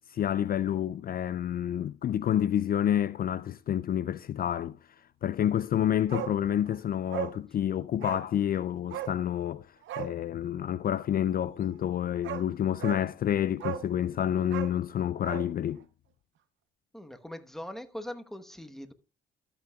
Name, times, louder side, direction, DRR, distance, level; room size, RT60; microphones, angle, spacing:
voice 1, 0.1-15.8, left 10 dB, 50° left, 0.4 m, -29 dB
Bark, 6.1-6.4 6.7-6.8 7.1-7.4 8.0-8.3 8.9-9.2 9.8-10.1 11.7-11.8 12.2-12.5 12.8-13.0 13.6-13.9 14.4-15.5 15.8-15.9, right 12 dB, 75° right, 0.8 m, -36 dB
voice 2, 16.9-18.9, left 1 dB, ahead, 1.1 m, -41 dB
13.0 x 8.6 x 2.3 m
cardioid pair, 90°, 20 cm